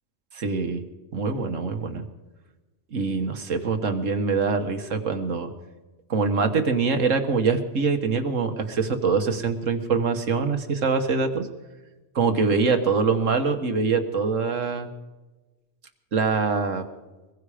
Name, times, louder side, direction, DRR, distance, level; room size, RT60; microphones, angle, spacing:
voice 1, 0.3-0.8 1.1-2.0 2.9-5.5 6.1-11.5 12.2-14.9 16.1-16.8, right 4 dB, 85° right, 6 dB, 1.8 m, -24 dB
24.5 x 21.0 x 5.0 m, 1.2 s
omnidirectional pair, 1.3 m